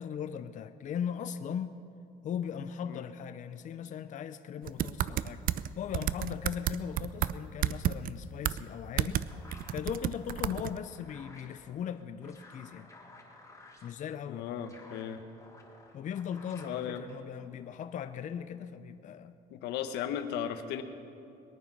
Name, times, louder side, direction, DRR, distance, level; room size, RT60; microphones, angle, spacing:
voice 1, 0.0-1.8 2.2-5.4 5.8-9.2 9.7-12.9 13.8-14.5 15.9-19.4, left 8 dB, 50° left, 10 dB, 0.6 m, -38 dB
sound 1, 4.7-5.7 5.9-7.3 7.6-8.1 8.5-8.6 9.0-9.3 9.5-10.8, right 12 dB, 55° right, 0.5 m, -30 dB
sound 2, 8.4-17.7, left 2 dB, 20° left, 3.4 m, -56 dB
voice 2, 14.3-15.2 16.7-17.0 19.5-20.8, left 9 dB, 90° left, 8 dB, 1.0 m, -36 dB
21.0 x 9.3 x 6.0 m, 2.5 s
cardioid pair, 110°, 17 cm